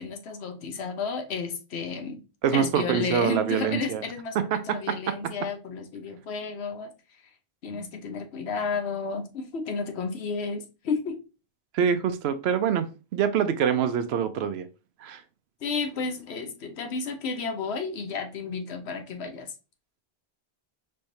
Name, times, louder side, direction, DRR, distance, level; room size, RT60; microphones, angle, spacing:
voice 1, 0.0-2.2 2.5-6.9 7.6-11.2 15.6-19.5, left 5 dB, 80° left, 1.1 m, -32 dB
voice 2, 2.4-4.0 4.3-5.2 11.7-14.7 15.0-15.2, right 8 dB, 80° right, 0.8 m, -25 dB
4.5 x 3.2 x 2.6 m
omnidirectional pair, 1.1 m